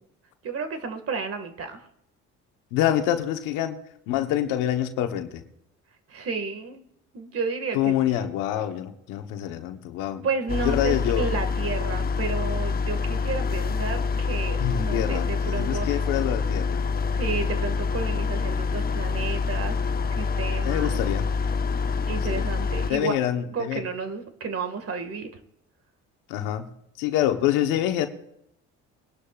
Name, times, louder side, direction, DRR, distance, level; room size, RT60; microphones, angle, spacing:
voice 1, 0.4-1.9 6.1-6.9 7.1-8.3 10.2-16.0 17.1-21.0 22.1-23.1 23.5-25.3, right 4 dB, 50° right, 8 dB, 2.0 m, -32 dB
voice 2, 2.7-3.8 4.1-5.4 7.7-10.2 10.6-11.3 14.6-16.8 20.6-21.3 22.3-22.5 22.9-23.8 26.3-26.7 27.0-28.1, left 12 dB, 90° left, 7 dB, 1.2 m, -26 dB
sound 1, 10.5-22.9, left 5 dB, 30° left, 0.8 m, -26 dB
22.0 x 11.5 x 2.5 m, 0.78 s
supercardioid pair, 85°, 31 cm